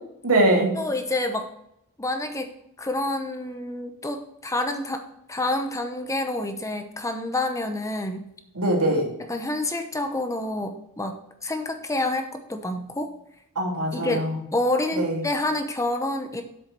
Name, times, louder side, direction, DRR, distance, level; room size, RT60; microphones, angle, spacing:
voice 1, 0.2-0.7 8.5-9.1 13.5-14.4 15.0-15.2, right 1 dB, 75° right, -1 dB, 2.8 m, -22 dB
voice 2, 0.8-1.5 2.0-2.5 2.8-5.0 5.3-8.3 9.3-11.2 11.4-13.1 13.9-14.2 14.5-16.4, left 2 dB, 15° left, 6 dB, 0.8 m, -28 dB
8.0 x 7.1 x 4.7 m, 0.77 s
head